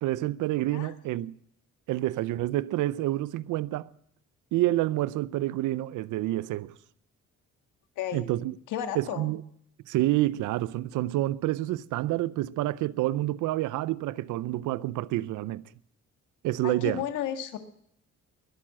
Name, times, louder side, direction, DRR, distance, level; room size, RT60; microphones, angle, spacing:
voice 1, 0.0-1.4 1.9-3.9 4.5-6.7 8.1-8.6 8.9-9.4 9.9-15.7 16.4-17.0, right 16 dB, 85° right, 0.6 m, -28 dB
voice 2, 8.0-8.3 8.7-9.3 16.6-17.6, left 10 dB, 90° left, 1.7 m, -33 dB
21.5 x 8.8 x 7.6 m
cardioid pair, 90°, 30 cm